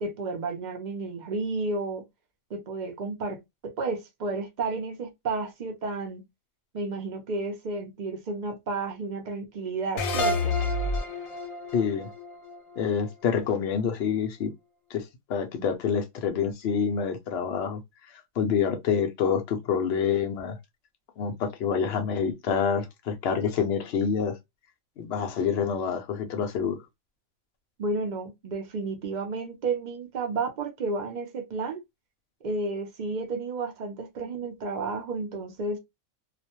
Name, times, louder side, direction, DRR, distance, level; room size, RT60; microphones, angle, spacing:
voice 1, 0.0-2.0 2.5-6.2 6.7-10.6 27.8-31.8 32.4-35.8, right 3 dB, 50° right, 0.5 m, -32 dB
sound 1, 10.0-13.3, left 2 dB, 80° left, 1.0 m, -29 dB
voice 2, 11.7-12.1 12.8-14.5 14.9-17.8 18.4-20.6 21.2-24.4 25.0-26.8, left 7 dB, 65° left, 0.7 m, -27 dB
2.4 x 2.1 x 2.8 m
omnidirectional pair, 1.4 m